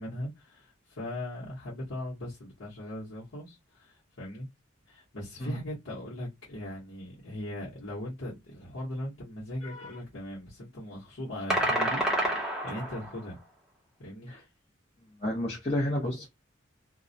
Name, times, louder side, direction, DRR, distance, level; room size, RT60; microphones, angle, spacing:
voice 1, 0.0-4.5 4.9-13.4 14.0-14.3, left 1 dB, 80° left, 1.0 m, -39 dB
voice 2, 9.6-10.0 14.3-14.4 15.2-16.3, left 1 dB, 35° left, 0.8 m, -31 dB
sound 1, 11.5-13.2, right 1 dB, 5° right, 0.7 m, -28 dB
2.2 x 2.1 x 2.6 m
head